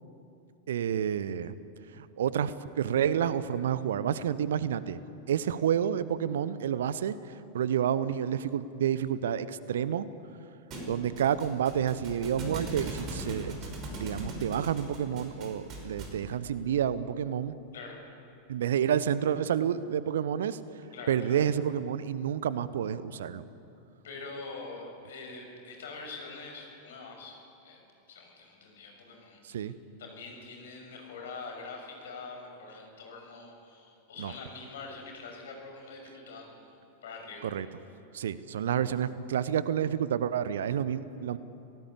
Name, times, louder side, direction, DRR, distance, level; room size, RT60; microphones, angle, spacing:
voice 1, 0.7-1.5 1.9-5.0 5.3-7.1 7.5-10.1 10.9-13.5 13.9-17.6 18.5-20.6 21.1-23.4 29.4-29.7 34.2-34.3 37.4-37.7 38.1-41.4, right 9 dB, 60° right, 16 dB, 0.9 m, -29 dB
Thump thud, 10.7-16.3, right 1 dB, 35° right, 5.6 m, -40 dB
voice 2, 20.9-21.4 24.0-27.4 27.6-27.8 28.1-29.7 30.0-36.5 37.0-37.5, left 4 dB, 60° left, 2 dB, 6.3 m, -44 dB
27.5 x 18.5 x 8.6 m, 2.8 s
figure-of-eight pair, 90°, 0 cm